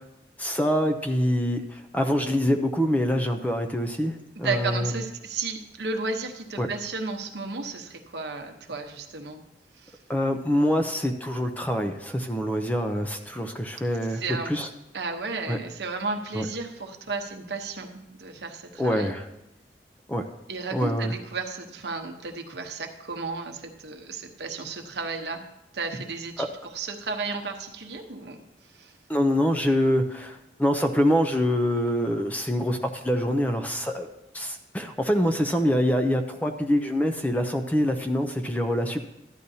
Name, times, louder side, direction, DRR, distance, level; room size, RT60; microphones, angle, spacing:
voice 1, 0.4-4.9 6.6-6.7 10.1-14.7 15.5-15.6 16.3-16.5 18.8-19.3 20.1-20.2 20.7-21.1 26.4-26.5 29.1-34.1 34.3-39.0, equal, 10° left, 6 dB, 0.5 m, -25 dB
voice 2, 4.4-9.4 9.8-10.0 14.1-14.5 14.9-19.2 20.5-25.4 25.7-28.4 28.7-28.9, right 4 dB, 70° right, 4 dB, 1.0 m, -33 dB
13.5 x 9.9 x 2.7 m, 0.91 s
head